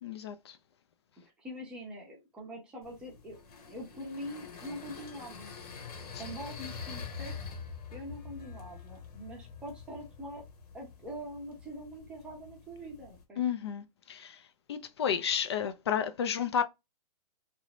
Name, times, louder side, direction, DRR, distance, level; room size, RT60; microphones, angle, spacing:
voice 1, 0.0-0.6 6.1-6.2 13.4-14.4 14.7-16.6, left 8 dB, 45° left, 0.4 m, -32 dB
voice 2, 1.2-3.4 3.7-5.5 6.2-7.4 7.9-10.4 10.7-13.4, equal, 5° right, 0.6 m, -44 dB
sound 1, 2.8-13.2, left 5 dB, 90° left, 1.2 m, -45 dB
3.0 x 2.6 x 2.9 m
hypercardioid pair, 175°, 19 cm